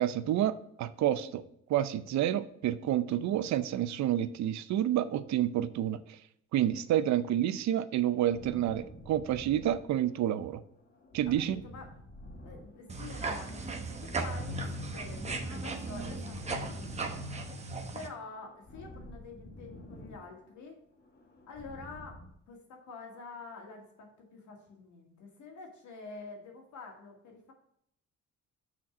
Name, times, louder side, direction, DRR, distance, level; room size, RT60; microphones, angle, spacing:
voice 1, 0.0-1.4 1.7-6.0 6.5-10.6 11.1-11.6, right 11 dB, 70° right, 13 dB, 0.5 m, -29 dB
sound 1, 8.3-10.4 10.7-13.3 13.5-15.5 15.9-17.8 18.1-20.6 20.9-22.3, left 1 dB, 35° left, 1.1 m, -49 dB
voice 2, 12.4-17.7 17.9-20.8 21.5-22.2 22.5-27.5, left 4 dB, 75° left, 1 dB, 2.1 m, -47 dB
sound 2, 12.9-18.1, right 3 dB, 20° right, 0.9 m, -37 dB
6.2 x 4.4 x 6.1 m, 0.72 s
cardioid pair, 125°, 30 cm